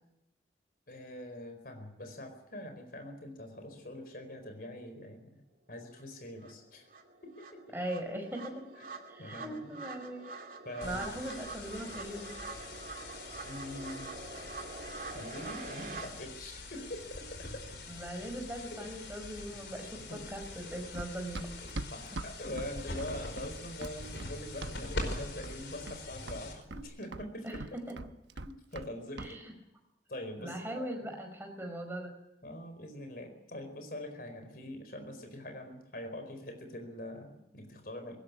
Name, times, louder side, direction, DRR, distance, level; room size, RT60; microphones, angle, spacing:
voice 1, 0.9-5.4 5.7-6.8 7.2-7.8 8.8-8.9 9.2-9.8 10.6-11.2 13.4-14.1 15.1-17.6 18.7-18.9 20.1-20.2 21.6-27.6 28.4-29.4 30.1-31.1 32.4-38.2, left 1 dB, 55° left, 6 dB, 4.5 m, -44 dB
sound 1, 6.0-6.1 6.4-16.1, right 3 dB, 50° right, 2.6 m, -45 dB
voice 2, 7.7-8.6 9.1-10.2 10.8-12.3 17.9-21.5 27.4-27.9 29.2-29.5 30.4-32.1, right 1 dB, 10° right, 4 dB, 4.9 m, -40 dB
sound 2, 10.8-26.8, left 2 dB, 85° left, 5.0 m, -44 dB
Run, 20.9-25.2 25.4-26.0 26.3-28.9 29.2-29.3, right 2 dB, 90° right, 1.1 m, -42 dB
20.5 x 17.5 x 9.6 m, 0.83 s
head